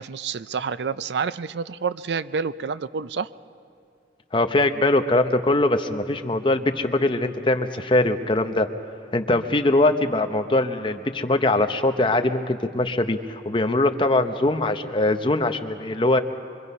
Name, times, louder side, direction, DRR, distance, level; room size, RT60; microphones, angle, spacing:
voice 1, 0.0-3.3, right 5 dB, 70° right, 15 dB, 0.5 m, -28 dB
voice 2, 4.3-8.7 9.1-16.2, left 2 dB, 25° left, 7 dB, 0.8 m, -22 dB
25.5 x 24.0 x 5.5 m, 2.3 s
head